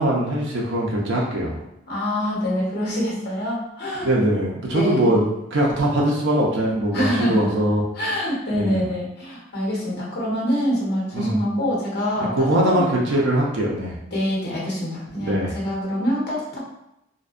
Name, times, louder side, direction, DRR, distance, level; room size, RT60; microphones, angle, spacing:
voice 1, 0.0-1.6 4.0-5.2 5.5-7.8 8.5-8.8 11.1-11.4 12.3-13.9 15.2-15.5, right 1 dB, 65° right, -3 dB, 0.5 m, -21 dB
voice 2, 1.9-4.1 4.7-5.2 6.9-7.5 7.9-12.9 14.1-16.6, equal, 55° left, -4 dB, 0.9 m, -25 dB
2.5 x 2.1 x 2.4 m, 0.83 s
head